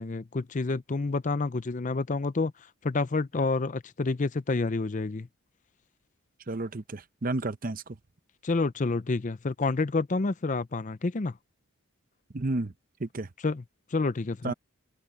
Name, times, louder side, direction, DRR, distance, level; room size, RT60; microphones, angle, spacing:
voice 1, 0.0-2.5 2.8-5.3 8.4-11.4 13.4-13.6 13.9-14.5, left 3 dB, 35° left, 0.5 m, -28 dB
voice 2, 6.5-8.0 12.3-12.7 13.0-13.3 14.4-14.5, right 2 dB, 40° right, 0.7 m, -31 dB
head